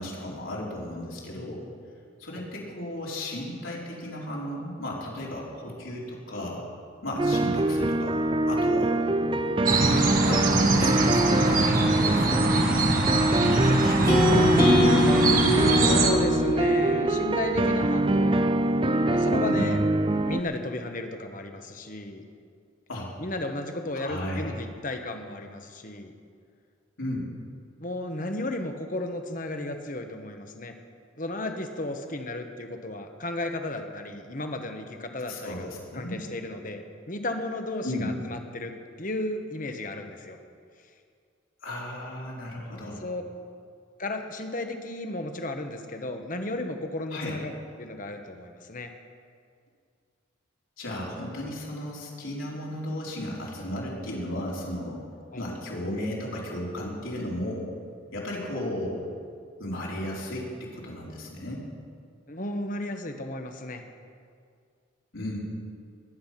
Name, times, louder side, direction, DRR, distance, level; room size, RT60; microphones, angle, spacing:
voice 1, 0.0-1.7 2.2-6.6 7.0-8.2 8.5-9.4 9.7-12.9 13.3-14.5 19.4-19.6 22.9-23.1 23.9-24.5 27.0-27.3 35.3-36.2 37.8-38.1 41.6-43.0 47.1-47.4 50.8-55.0 55.4-57.7 58.1-59.1 59.6-61.7 65.1-65.4, left 1 dB, 75° left, -4 dB, 4.0 m, -34 dB
sound 1, 7.2-20.4, right 2 dB, 25° right, 0.4 m, -24 dB
sound 2, 9.7-16.1, right 2 dB, 40° right, 1.6 m, -24 dB
sound 3, 14.1-18.2, left 1 dB, 20° left, 2.0 m, -24 dB
voice 2, 15.7-18.4 19.1-19.8 20.1-22.2 23.2-26.1 27.8-30.8 31.2-35.7 35.9-40.4 43.0-43.2 44.0-47.5 47.8-48.9 55.3-55.5 62.3-63.8, left 2 dB, 40° left, 5 dB, 1.3 m, -34 dB
21.5 x 10.5 x 5.9 m, 2.2 s
head